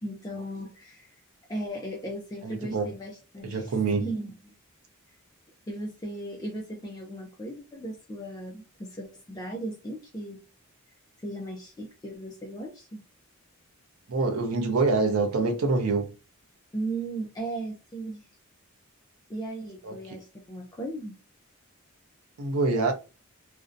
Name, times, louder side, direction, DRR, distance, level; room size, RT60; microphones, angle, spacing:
voice 1, 0.0-1.1 1.5-4.5 5.7-10.4 11.2-13.0 16.7-18.3 19.3-21.2, right 1 dB, 20° left, 0.4 m, -37 dB
voice 2, 2.4-2.9 3.4-4.1 14.1-16.1 19.8-20.2 22.4-22.9, right 3 dB, 75° right, 0.5 m, -26 dB
2.5 x 2.0 x 2.5 m
head